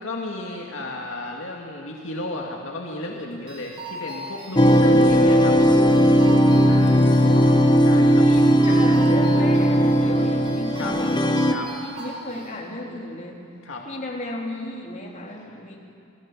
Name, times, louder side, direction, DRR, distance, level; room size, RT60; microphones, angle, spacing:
voice 1, 0.0-5.6 6.6-7.0 7.9-8.2 10.8-11.2 11.5-11.7 13.6-13.9, left 2 dB, 70° left, -1 dB, 2.3 m, -33 dB
sound 1, 3.5-12.5, right 1 dB, 30° right, 4.6 m, -38 dB
sound 2, 4.6-11.6, equal, 20° left, 1.0 m, -17 dB
voice 2, 6.9-7.6 7.9-13.4 13.9-15.8, left 1 dB, 40° left, -1 dB, 3.6 m, -35 dB
28.0 x 19.0 x 7.5 m, 2.5 s
head